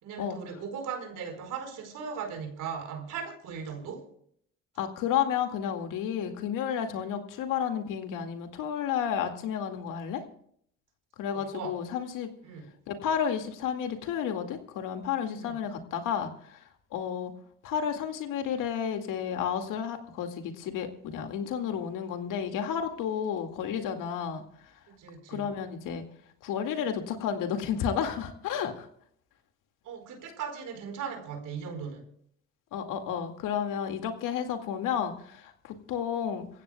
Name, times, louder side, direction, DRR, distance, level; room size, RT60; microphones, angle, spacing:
voice 1, 0.0-4.1 7.0-7.1 11.2-11.8 12.4-12.7 15.3-15.6 24.9-25.5 29.8-32.1, right 6 dB, 70° right, 5 dB, 4.8 m, -38 dB
voice 2, 4.8-10.2 11.2-12.3 12.9-16.6 16.9-17.3 17.6-24.4 25.3-26.0 26.4-28.9 32.7-36.5, left 8 dB, 75° left, 5 dB, 2.2 m, -31 dB
26.5 x 15.5 x 2.3 m, 0.66 s
cardioid pair, 90°, 32 cm